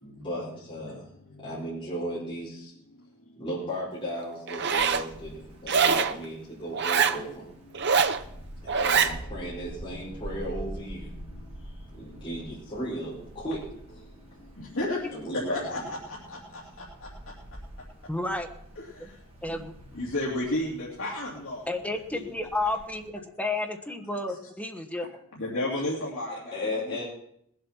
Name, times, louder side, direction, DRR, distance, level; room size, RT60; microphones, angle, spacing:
voice 1, 0.0-1.1 1.4-2.7 3.4-7.5 8.7-11.1 11.9-13.7 15.1-15.6 26.5-27.1, equal, 25° left, -8 dB, 4.8 m, -35 dB
voice 2, 1.2-1.7 4.9-5.0 5.6-5.8 7.8-7.9 8.7-8.8 11.3-11.4 12.1-12.2 14.6-16.8 18.8-19.2 19.5-19.6 19.9-21.6 21.9-22.2 22.6-22.7 24.3-24.4 25.3-27.0, left 1 dB, 70° left, -5 dB, 2.8 m, -33 dB
Wind, 4.5-23.1, equal, 30° right, 2.6 m, -46 dB
Zipper (clothing), 4.5-5.1 5.7-6.2 6.7-7.2 7.7-8.2 8.7-9.1, right 6 dB, 50° right, 0.8 m, -23 dB
voice 3, 18.1-18.5 19.4-19.7 21.7-25.1, left 2 dB, 5° left, 3 dB, 1.3 m, -31 dB
20.0 x 8.0 x 5.8 m, 0.69 s
head